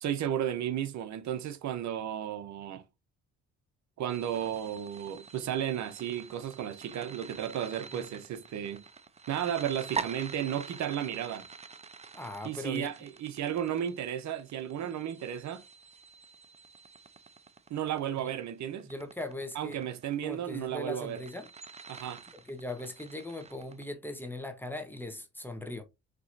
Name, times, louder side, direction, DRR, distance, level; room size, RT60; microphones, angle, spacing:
voice 1, 0.0-2.8 4.0-8.8 9.3-11.5 12.4-15.6 17.7-18.9 19.5-21.2 21.9-22.2, right 10 dB, 70° right, 0.8 m, -34 dB
sound 1, 4.1-23.8, right 5 dB, 20° right, 0.5 m, -46 dB
voice 2, 12.1-12.9 18.8-19.8 20.2-21.5 22.4-25.8, left 2 dB, 5° left, 1.0 m, -39 dB
6.0 x 3.0 x 2.6 m
cardioid pair, 90°, 30 cm